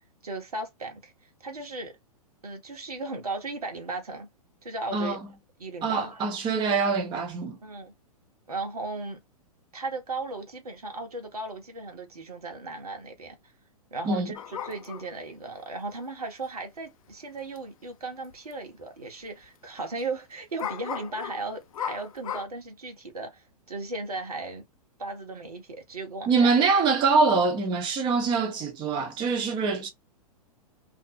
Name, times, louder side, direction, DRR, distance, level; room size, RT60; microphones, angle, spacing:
voice 1, 0.2-2.0 2.4-4.3 4.6-5.2 5.6-6.2 7.6-7.9 8.5-9.2 9.7-13.4 13.9-24.6 25.0-26.5, right 3 dB, 80° right, 1.0 m, -36 dB
voice 2, 5.8-7.6 14.0-14.3 26.3-29.9, right 4 dB, 25° right, 0.7 m, -24 dB
sound 1, 14.4-15.2 17.1-17.2 17.6-17.7 18.3-18.5 18.8-18.9 20.6-22.5, left 9 dB, 65° left, 0.5 m, -36 dB
2.5 x 2.0 x 2.8 m
figure-of-eight pair, 110°, 19 cm